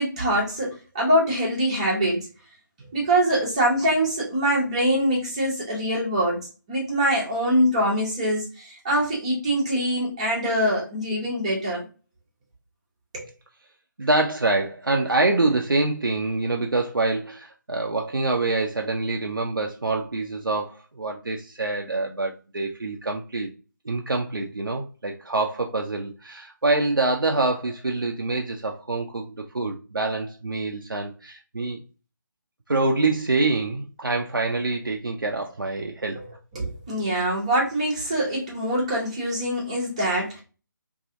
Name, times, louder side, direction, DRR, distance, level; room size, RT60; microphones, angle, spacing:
voice 1, 0.0-2.3 2.9-6.4 6.7-11.8 13.1-13.3 36.1-36.3 36.5-40.4, equal, 20° right, -4 dB, 0.8 m, -24 dB
voice 2, 14.0-23.5 23.9-31.8 32.7-36.2, right 2 dB, 80° right, 1 dB, 0.4 m, -25 dB
2.7 x 2.5 x 2.5 m, 0.34 s
figure-of-eight pair, 155°, 11 cm